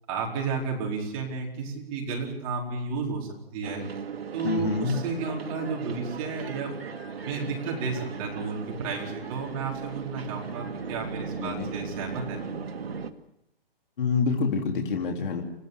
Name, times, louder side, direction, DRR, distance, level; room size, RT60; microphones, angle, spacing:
voice 1, 0.1-3.8 4.3-6.7 7.2-12.4, right 4 dB, 25° right, -1 dB, 4.6 m, -32 dB
sound 1, 3.6-13.1, right 6 dB, 75° right, 2.0 m, -37 dB
voice 2, 4.4-5.0 11.4-11.7 14.0-15.4, left 5 dB, 60° left, 1 dB, 3.8 m, -27 dB
29.5 x 14.5 x 8.3 m, 0.85 s
hypercardioid pair, 170°, 30 cm